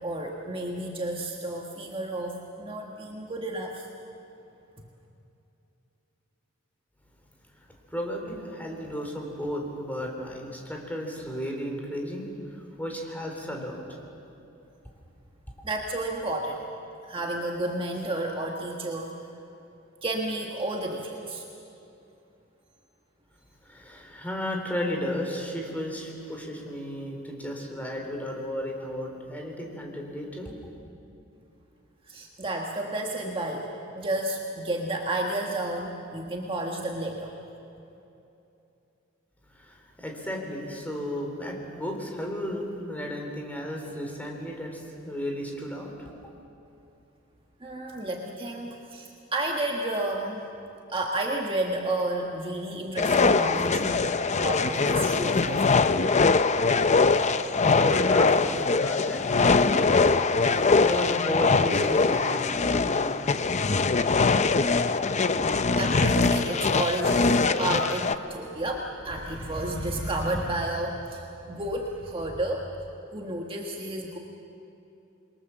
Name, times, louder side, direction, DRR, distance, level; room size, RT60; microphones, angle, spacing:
voice 1, 0.0-3.9 15.6-16.6 17.0-19.1 20.0-21.4 32.1-33.7 33.9-37.3 47.6-50.4 50.9-55.7 65.5-72.7 73.1-74.2, right 1 dB, 25° right, 0 dB, 1.5 m, -31 dB
voice 2, 7.6-13.8 23.6-30.5 39.5-46.1 57.3-60.0 60.5-63.2, equal, 10° left, 1 dB, 3.7 m, -34 dB
sound 1, 53.0-68.2, left 4 dB, 35° left, 0.6 m, -22 dB
27.5 x 22.5 x 7.2 m, 2.9 s
head